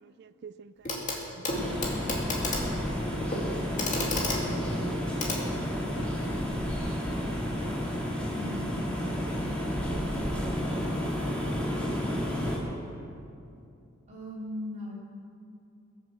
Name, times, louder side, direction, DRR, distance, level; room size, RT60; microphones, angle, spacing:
voice 1, 0.0-2.1 9.3-9.4 9.9-10.0, right 6 dB, 50° right, 16 dB, 0.3 m, -51 dB
Clock, 0.9-1.2 1.4-6.1 7.4-7.5, left 2 dB, 35° left, 2.3 m, -33 dB
sound 1, 1.5-12.6, equal, 5° left, 2.3 m, -31 dB
voice 2, 8.3-8.8 14.1-14.9, left 1 dB, 35° right, -6 dB, 3.2 m, -38 dB
21.5 x 7.5 x 7.4 m, 2.7 s
head